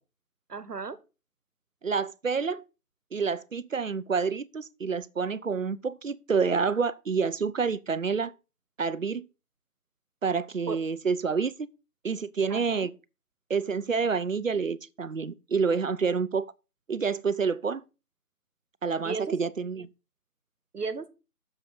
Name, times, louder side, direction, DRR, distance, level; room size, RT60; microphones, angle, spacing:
voice 1, 0.5-1.0 10.7-10.8 12.5-12.9 19.0-19.4 20.7-21.1, right 4 dB, 75° right, 1.2 m, -34 dB
voice 2, 1.8-2.6 3.1-8.3 8.8-9.2 10.2-11.7 12.0-12.9 13.5-16.5 16.9-17.8 18.8-19.9, right 5 dB, 55° right, 0.6 m, -28 dB
6.9 x 6.8 x 5.1 m
figure-of-eight pair, 170°, 47 cm